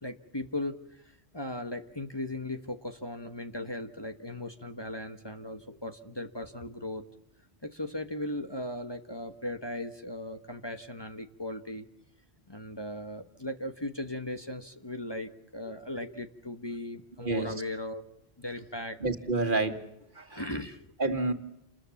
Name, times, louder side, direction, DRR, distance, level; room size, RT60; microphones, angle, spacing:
voice 1, 0.0-7.0 7.6-11.9 12.5-18.0 18.4-19.0 20.3-20.9, left 1 dB, 25° left, 6 dB, 1.4 m, -37 dB
voice 2, 19.0-19.8 20.2-20.4 21.0-21.3, right 3 dB, 50° right, 7 dB, 2.3 m, -28 dB
29.0 x 21.0 x 7.2 m, 0.81 s
omnidirectional pair, 1.1 m